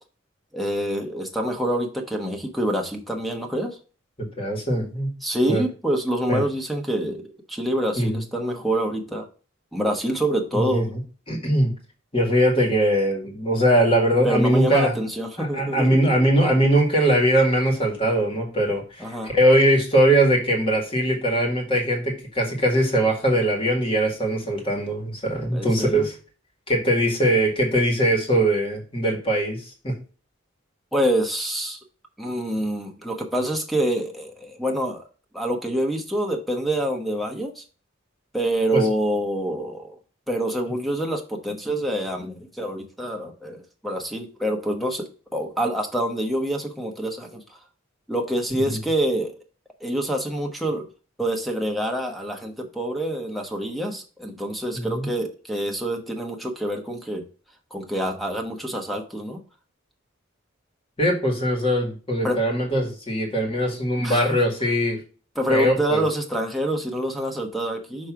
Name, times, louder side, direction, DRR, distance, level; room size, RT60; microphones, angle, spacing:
voice 1, 0.5-3.8 5.2-7.2 7.5-9.3 9.7-10.8 14.2-16.1 19.0-19.3 25.5-26.1 30.9-31.8 32.2-35.0 35.3-37.6 38.3-40.0 40.3-45.1 45.3-47.4 48.1-49.3 49.8-50.9 51.2-57.2 57.7-59.4 62.2-62.4 64.0-64.4 65.4-68.1, right 1 dB, ahead, 3 dB, 1.0 m, -26 dB
voice 2, 4.2-5.1 5.5-5.6 6.3-6.4 8.0-8.2 10.5-10.9 11.3-11.7 12.1-14.9 15.4-26.1 26.7-30.0 38.7-38.9 48.7-48.8 54.7-55.1 61.0-65.0 65.5-66.0, right 1 dB, 25° left, 0 dB, 1.9 m, -21 dB
6.2 x 3.2 x 5.7 m, 0.38 s
head